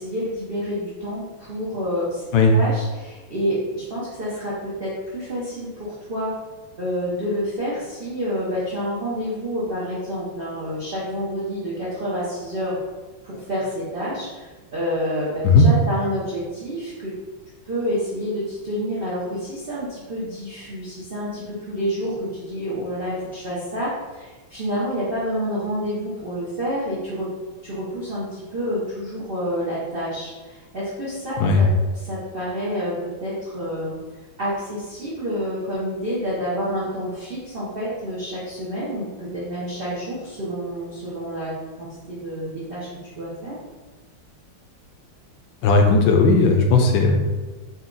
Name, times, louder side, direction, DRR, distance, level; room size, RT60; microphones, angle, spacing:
voice 1, 0.0-2.2 2.5-6.3 6.8-12.8 13.2-17.1 17.6-27.3 27.6-31.6 31.9-33.9 34.4-41.5 41.8-43.6, equal, 85° right, -8 dB, 0.5 m, -28 dB
voice 2, 45.6-47.2, left 3 dB, 75° left, 2 dB, 1.1 m, -16 dB
4.1 x 2.3 x 3.8 m, 1.2 s
omnidirectional pair, 2.3 m